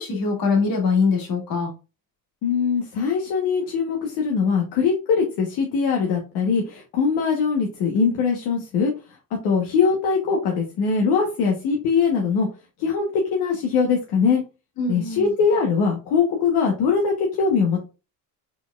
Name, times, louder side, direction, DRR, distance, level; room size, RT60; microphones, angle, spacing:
voice 1, 0.0-1.7 14.8-15.3, left 4 dB, 60° left, 2.1 m, -23 dB
voice 2, 2.4-8.9 9.4-12.5 12.8-14.4 14.9-17.8, left 5 dB, 80° left, 1.1 m, -21 dB
4.7 x 4.0 x 2.3 m
cardioid pair, 95°, 39 cm